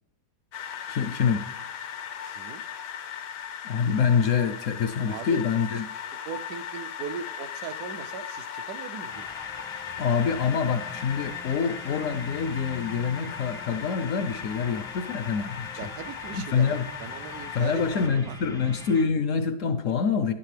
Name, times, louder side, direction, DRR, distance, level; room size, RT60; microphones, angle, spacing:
sound 1, 0.5-18.1, left 8 dB, 85° left, 1.3 m, -38 dB
voice 1, 0.9-1.4 3.6-5.8 10.0-15.9 16.3-16.8 17.5-20.3, left 6 dB, 70° left, 0.7 m, -26 dB
voice 2, 2.2-2.6 5.1-5.6 6.3-9.3 15.8-18.4, right 8 dB, 70° right, 0.9 m, -39 dB
sound 2, 9.1-19.0, left 1 dB, 5° left, 0.4 m, -43 dB
10.0 x 10.0 x 3.3 m
omnidirectional pair, 1.8 m